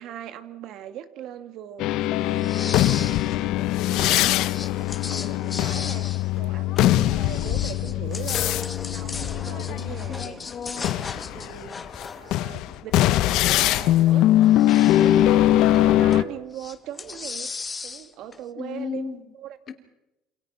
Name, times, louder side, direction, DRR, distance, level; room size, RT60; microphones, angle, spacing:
voice 1, 0.0-3.2 3.6-4.4 4.7-8.6 8.9-10.6 10.9-11.8 12.2-13.0 13.3-14.3 14.8-17.5 17.8-19.6, right 11 dB, 65° right, 10 dB, 2.2 m, -40 dB
sound 1, 1.8-10.3 10.8-16.2, left 13 dB, 70° left, 0.9 m, -21 dB
sound 2, 2.3-3.4 3.6-6.9 7.2-13.7 14.3-15.3 15.7-16.3 16.5-18.4, left 4 dB, 20° left, 1.6 m, -37 dB
voice 2, 10.1-11.0 18.6-19.2 19.7-19.8, left 6 dB, 40° left, 6 dB, 3.1 m, -35 dB
28.0 x 27.5 x 5.8 m, 0.96 s
cardioid pair, 130°, 0 cm